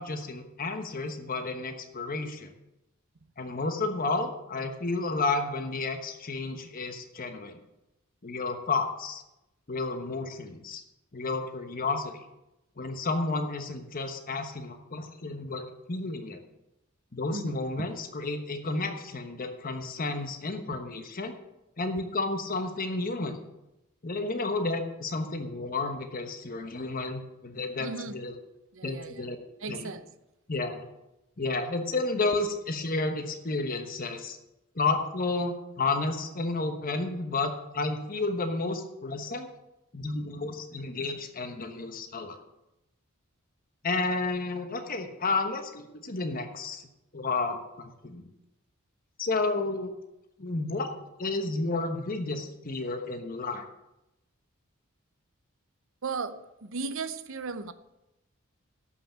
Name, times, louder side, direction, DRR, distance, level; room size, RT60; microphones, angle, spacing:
voice 1, 0.0-2.5 3.4-7.6 8.2-9.2 9.7-10.8 11.1-12.2 12.8-15.6 15.9-16.4 17.1-21.3 21.8-23.4 24.0-28.4 28.8-29.4 29.7-29.9 30.5-30.8 31.4-34.4 34.7-39.5 39.9-42.4 43.8-46.8 47.1-48.2 49.2-49.9 50.4-50.9 51.2-53.6, left 3 dB, 40° left, 6 dB, 1.1 m, -31 dB
voice 2, 27.8-28.1 28.8-29.1 29.6-30.0 56.0-57.7, right 4 dB, 65° right, 12 dB, 0.8 m, -35 dB
12.5 x 5.8 x 7.6 m, 0.91 s
head